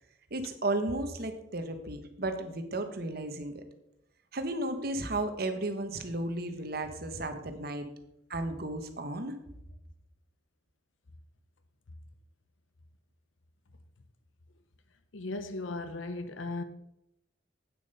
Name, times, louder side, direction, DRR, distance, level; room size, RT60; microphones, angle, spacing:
voice 1, 0.3-3.6 4.3-7.9 8.3-9.4, right 2 dB, 50° right, 1.2 m, -34 dB
voice 2, 15.1-16.6, left 2 dB, 80° left, 0.8 m, -36 dB
8.8 x 7.1 x 5.5 m
head